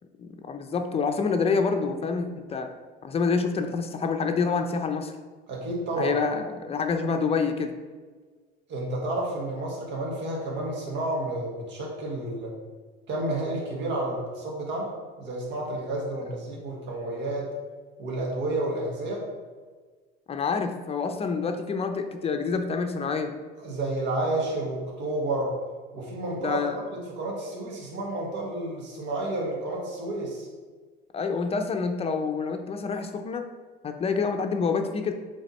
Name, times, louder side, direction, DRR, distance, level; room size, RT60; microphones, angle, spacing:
voice 1, 0.2-2.7 3.0-5.1 5.9-7.8 20.3-23.3 26.4-26.8 31.1-33.5 33.8-35.1, left 5 dB, 30° left, 5 dB, 0.6 m, -27 dB
voice 2, 5.5-6.1 8.7-12.5 13.1-17.5 18.0-19.3 23.6-25.6 25.9-26.6 26.9-30.5, right 2 dB, 65° right, -2 dB, 1.6 m, -30 dB
7.8 x 3.5 x 4.2 m, 1.4 s
cardioid pair, 115°, 20 cm